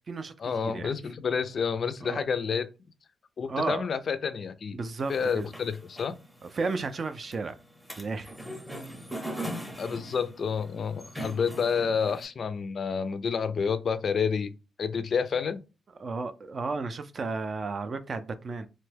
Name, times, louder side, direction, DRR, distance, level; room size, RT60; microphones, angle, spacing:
voice 1, 0.4-2.7 3.4-4.8 5.1-6.1 9.8-14.5 14.8-15.6, left 6 dB, 50° left, 0.3 m, -29 dB
voice 2, 3.5-3.9 4.7-5.5 6.4-7.6 8.0-8.3 16.0-18.7, right 4 dB, 40° right, 0.4 m, -33 dB
sound 1, 5.0-12.3, right 1 dB, ahead, 0.6 m, -41 dB
2.9 x 2.2 x 3.2 m
cardioid pair, 115°, 0 cm